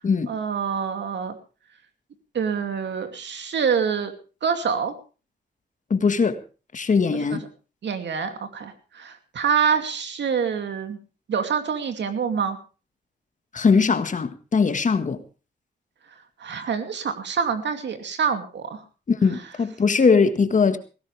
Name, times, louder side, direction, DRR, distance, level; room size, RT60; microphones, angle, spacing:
voice 1, 0.3-1.4 2.3-4.1 4.4-4.9 7.1-7.4 7.8-11.0 11.3-12.6 16.4-18.8, right 6 dB, 80° right, 7 dB, 2.6 m, -26 dB
voice 2, 5.9-6.4 6.7-7.4 13.5-15.2 19.1-20.8, left 5 dB, 45° left, 10 dB, 1.6 m, -20 dB
19.0 x 16.0 x 3.4 m, 0.34 s
wide cardioid pair, 135°, 18 cm